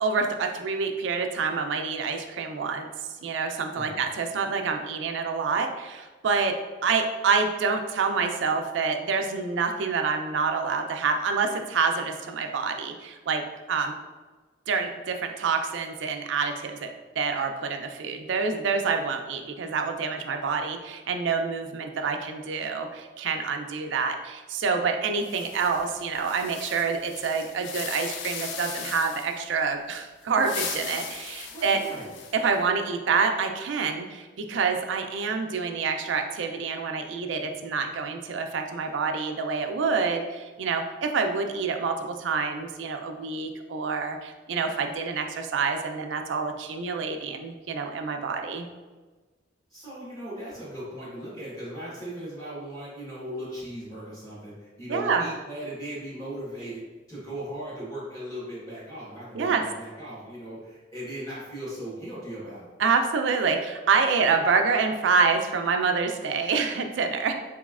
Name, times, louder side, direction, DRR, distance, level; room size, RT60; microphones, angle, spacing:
voice 1, 0.0-2.9 3.2-6.5 6.8-13.4 13.7-13.9 14.7-16.9 17.2-31.8 32.3-48.7 54.9-55.3 59.3-59.6 62.8-67.3, right 5 dB, 75° right, 5 dB, 0.4 m, -27 dB
sound 1, 25.2-29.4 30.2-32.6, left 6 dB, 70° left, 0.4 m, -38 dB
voice 2, 31.5-32.1 49.7-56.8 57.1-62.7, right 1 dB, 20° left, -10 dB, 1.1 m, -38 dB
4.1 x 3.0 x 2.4 m, 1.3 s
head